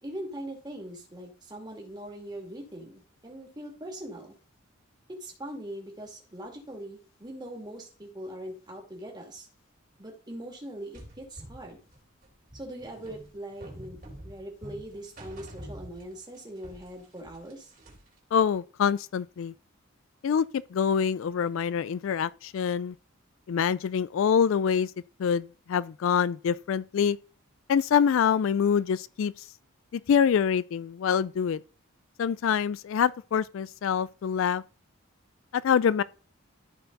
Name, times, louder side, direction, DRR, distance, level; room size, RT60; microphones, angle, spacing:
voice 1, 0.0-4.4 5.2-9.5 10.0-11.8 12.5-14.0 14.2-17.7, right 1 dB, 20° right, 2.3 m, -41 dB
sound 1, 10.9-16.4 16.6-18.2, right 1 dB, 40° right, 3.3 m, -46 dB
voice 2, 18.3-19.5 20.2-20.5 20.7-23.0 23.5-24.9 25.2-27.2 27.7-29.4 29.9-31.6 32.2-34.6 35.5-36.0, left 7 dB, 65° left, 0.3 m, -25 dB
13.5 x 4.7 x 4.0 m
head